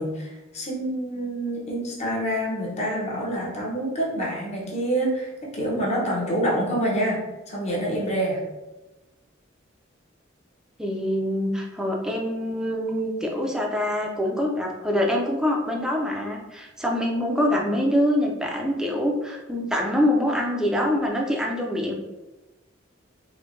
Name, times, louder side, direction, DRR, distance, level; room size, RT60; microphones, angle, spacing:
voice 1, 0.0-8.4, right 1 dB, 35° left, -3 dB, 0.9 m, -27 dB
voice 2, 10.8-21.9, left 1 dB, 5° right, 0 dB, 0.4 m, -25 dB
4.4 x 2.2 x 2.6 m, 1.1 s
head